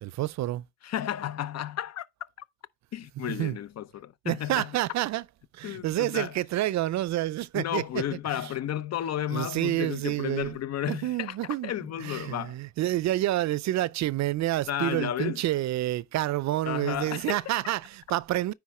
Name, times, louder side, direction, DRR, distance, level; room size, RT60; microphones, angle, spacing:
voice 1, 0.0-0.6 3.3-3.6 4.2-5.2 5.5-8.0 9.3-10.6 10.9-11.7 12.0-18.5, right 15 dB, 65° right, 0.5 m, -28 dB
voice 2, 0.8-2.0 2.9-4.8 5.6-6.4 7.5-12.6 14.7-15.4 16.7-17.4, left 11 dB, 60° left, 0.7 m, -33 dB
9.6 x 3.7 x 4.3 m
cardioid pair, 90°, 30 cm